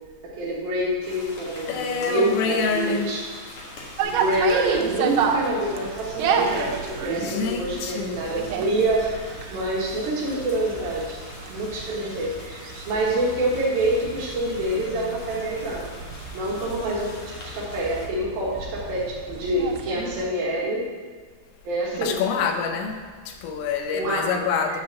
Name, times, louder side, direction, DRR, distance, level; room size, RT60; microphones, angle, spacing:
voice 1, 0.4-3.2 4.0-11.2 11.5-15.9 16.3-17.2 17.5-20.8 21.6-22.2 23.9-24.8, right 1 dB, 60° right, -5 dB, 3.1 m, -26 dB
sound 1, 1.0-18.1, left 1 dB, 60° left, 1.4 m, -43 dB
voice 2, 1.7-3.1 7.2-8.2 22.0-23.0 23.3-24.8, left 6 dB, 85° left, 5 dB, 3.1 m, -26 dB
sound 2, 4.0-20.2, right 6 dB, 90° right, 3.2 m, -31 dB
9.2 x 4.3 x 7.0 m, 1.5 s
omnidirectional pair, 5.2 m